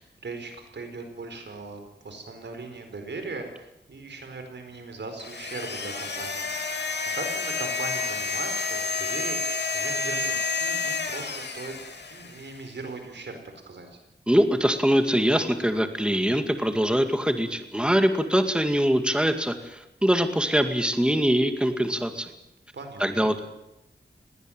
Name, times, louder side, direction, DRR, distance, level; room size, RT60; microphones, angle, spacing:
voice 1, 0.0-11.8 12.1-13.4 13.7-14.0 22.7-23.3, right 3 dB, 90° right, 6 dB, 4.6 m, -39 dB
sound 1, 5.2-12.6, left 4 dB, 75° left, 2.7 m, -30 dB
voice 2, 14.3-22.3 23.0-23.4, equal, 5° right, 8 dB, 2.2 m, -23 dB
20.5 x 18.0 x 9.1 m, 0.90 s
wide cardioid pair, 75°, 18 cm